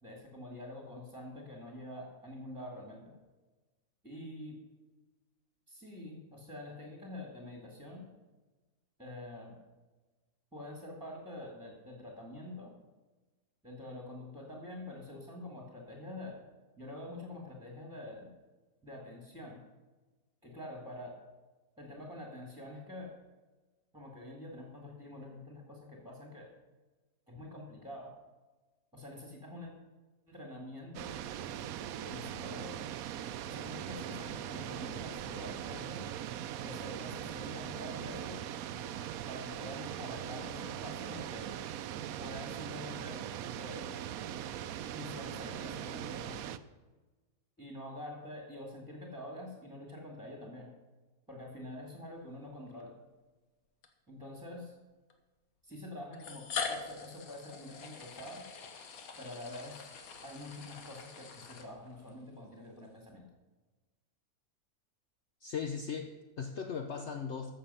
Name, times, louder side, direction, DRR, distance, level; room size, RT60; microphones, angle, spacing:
voice 1, 0.0-3.1 4.0-4.6 5.7-8.1 9.0-9.6 10.5-12.7 13.6-16.4 16.8-18.3 18.8-19.6 20.4-21.2 21.8-23.1 23.9-26.5 27.3-28.1 28.9-29.7 30.3-31.1 32.0-32.8 33.4-36.0 36.6-38.3 39.3-41.5 42.2-43.2 43.6-43.9 44.9-46.5 47.6-50.7 51.3-52.9 54.1-54.7 55.6-58.4 59.2-59.9 60.2-63.2, left 1 dB, 5° right, -1 dB, 1.9 m, -46 dB
sound 1, 30.9-46.6, right 10 dB, 75° right, 1.0 m, -40 dB
sound 2, 52.7-52.8 53.8-53.9 55.1-55.2 56.1-62.1, left 5 dB, 75° left, 1.5 m, -43 dB
voice 2, 65.4-67.5, left 6 dB, 55° left, 5 dB, 0.9 m, -38 dB
14.0 x 6.8 x 5.6 m, 1.2 s
omnidirectional pair, 1.6 m